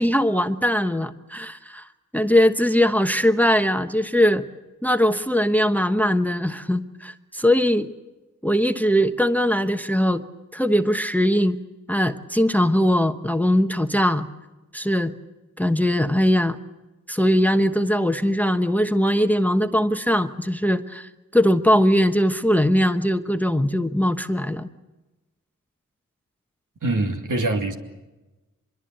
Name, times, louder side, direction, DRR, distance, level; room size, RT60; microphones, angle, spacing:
voice 1, 0.0-1.9 2.1-4.4 4.8-7.9 8.4-10.2 10.5-11.6 11.9-14.3 14.7-15.1 15.6-16.6 17.1-24.7, equal, 5° left, 9 dB, 1.1 m, -20 dB
voice 2, 26.8-27.7, right 2 dB, 70° right, 4 dB, 2.9 m, -24 dB
25.0 x 22.5 x 7.8 m, 1.1 s
wide cardioid pair, 70°, 32 cm